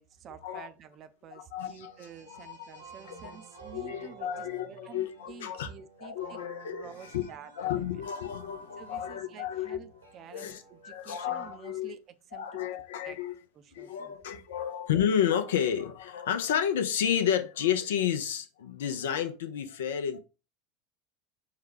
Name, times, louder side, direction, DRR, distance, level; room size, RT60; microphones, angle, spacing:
voice 1, 0.0-6.4 6.7-7.9 8.8-12.6 13.0-13.2 13.5-14.4, right 8 dB, 40° right, 0.5 m, -50 dB
voice 2, 1.5-1.9 2.3-2.5 3.1-3.4 3.7-5.7 6.0-7.2 7.6-9.8 10.3-11.9 12.3-13.3 13.7-20.2, left 9 dB, 65° left, 0.5 m, -31 dB
sound 1, 1.8-11.6, right 4 dB, 85° right, 1.2 m, -52 dB
5.6 x 2.2 x 3.4 m
figure-of-eight pair, 75°, 0 cm